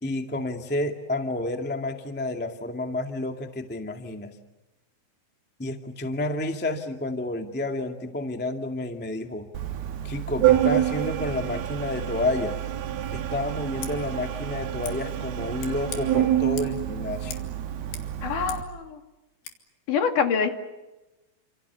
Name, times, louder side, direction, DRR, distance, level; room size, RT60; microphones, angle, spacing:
voice 1, 0.0-4.3 5.6-9.5 10.0-12.6 13.1-17.4, left 2 dB, 10° left, 5 dB, 0.5 m, -30 dB
Organ, 9.5-18.6, right 12 dB, 75° right, 3.4 m, -27 dB
Scissors, 13.7-13.9 14.8-15.0 15.6-16.0 16.6-16.8 17.3-17.5 17.8-18.7 19.4-19.6, left 8 dB, 80° left, 4.2 m, -40 dB
voice 2, 18.2-19.0 19.9-20.5, left 6 dB, 60° left, 6 dB, 3.5 m, -25 dB
30.0 x 27.0 x 7.0 m, 1.0 s
omnidirectional pair, 4.5 m